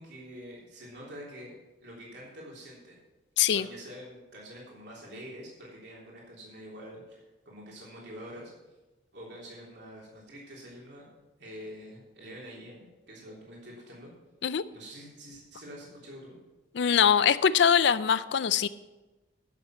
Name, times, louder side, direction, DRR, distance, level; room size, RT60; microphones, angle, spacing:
voice 1, 0.0-1.5 1.8-3.0 3.5-8.5 9.1-11.0 11.4-14.1 14.7-16.4, equal, 60° right, -4 dB, 3.4 m, -46 dB
voice 2, 3.4-3.7 14.4-14.6 16.7-18.7, left 8 dB, 60° left, 16 dB, 0.4 m, -23 dB
11.0 x 7.3 x 6.5 m, 1.1 s
head